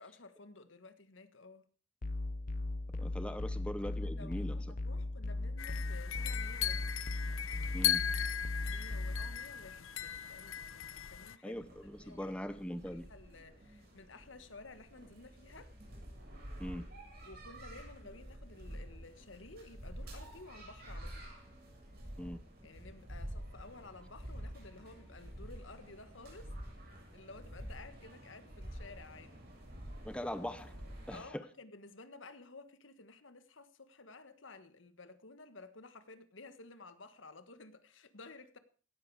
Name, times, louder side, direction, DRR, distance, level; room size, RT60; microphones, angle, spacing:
voice 1, 0.0-1.6 3.8-7.0 8.7-12.4 12.8-15.7 17.2-21.3 22.6-26.5 27.1-29.5 31.1-38.6, left 3 dB, 70° left, 1.6 m, -54 dB
sound 1, 2.0-9.4, left 2 dB, 40° left, 0.7 m, -38 dB
voice 2, 3.0-4.7 7.7-8.0 11.4-13.1 16.6-16.8 22.2-22.4 30.0-30.7 31.1-31.4, equal, 5° left, 0.7 m, -41 dB
sound 2, 5.6-11.4, left 10 dB, 90° left, 0.8 m, -37 dB
sound 3, 11.5-31.2, equal, 50° right, 7.1 m, -49 dB
17.0 x 13.5 x 4.9 m
head